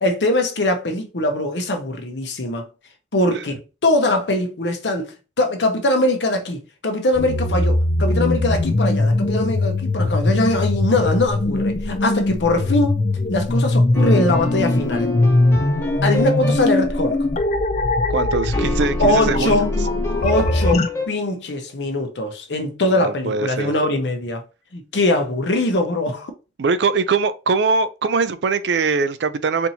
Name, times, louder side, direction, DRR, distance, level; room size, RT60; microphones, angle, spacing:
voice 1, 0.0-2.7 3.1-13.0 13.3-15.1 16.0-17.2 19.0-19.7 20.2-24.4 24.7-26.3, left 1 dB, 85° left, 0.9 m, -22 dB
sound 1, 7.1-20.9, left 2 dB, 40° left, 0.4 m, -20 dB
sound 2, 13.9-17.7 18.5-21.1, left 2 dB, 15° left, 0.8 m, -28 dB
voice 2, 18.1-19.6 22.9-23.7 26.6-29.7, right 4 dB, 75° right, 0.4 m, -21 dB
4.3 x 2.7 x 2.8 m
head